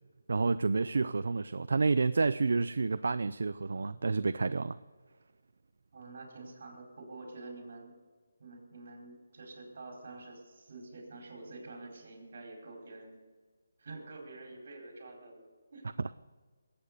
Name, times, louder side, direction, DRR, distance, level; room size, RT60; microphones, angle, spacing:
voice 1, 0.3-4.8, right 4 dB, 65° right, 13 dB, 0.4 m, -29 dB
voice 2, 5.9-7.9 8.4-13.2 13.8-15.4 15.7-15.9, right 2 dB, 45° right, 1 dB, 4.5 m, -47 dB
20.5 x 8.8 x 6.7 m, 1.5 s
hypercardioid pair, 170°, 0 cm